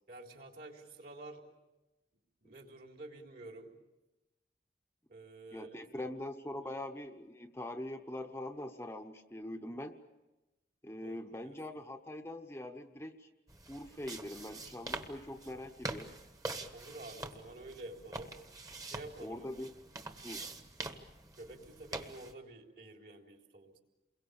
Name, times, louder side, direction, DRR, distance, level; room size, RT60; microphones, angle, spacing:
voice 1, 0.1-1.4 2.4-3.7 5.1-6.1 11.0-11.2 11.4-11.5 16.7-18.4 18.8-19.7 21.4-23.8, right 2 dB, 55° right, 2 dB, 3.7 m, -50 dB
voice 2, 5.5-10.0 10.8-13.3 13.7-16.1 19.2-19.7 20.2-20.5, left 1 dB, 15° left, 5 dB, 0.9 m, -43 dB
sound 1, 13.5-22.3, right 2 dB, 20° right, 1.4 m, -45 dB
29.0 x 22.5 x 7.0 m, 1.0 s
head